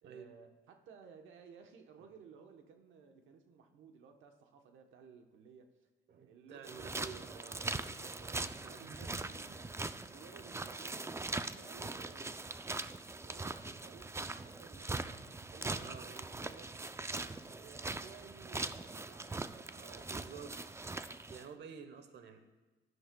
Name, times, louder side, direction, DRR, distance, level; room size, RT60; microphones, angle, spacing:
voice 1, 0.0-5.9 6.2-7.1 7.5-11.2 11.5-12.5 13.2-15.9 16.2-16.8 17.1-20.5, right 6 dB, 85° right, 4 dB, 1.0 m, -58 dB
voice 2, 6.1-7.6 8.6-9.7 15.6-16.4 17.2-17.4 19.7-20.8 21.3-22.4, right 6 dB, 60° right, 8 dB, 1.0 m, -51 dB
sound 1, 6.6-21.5, right 3 dB, 15° right, 0.4 m, -41 dB
16.0 x 11.0 x 2.3 m, 1.3 s
cardioid pair, 90°, 20 cm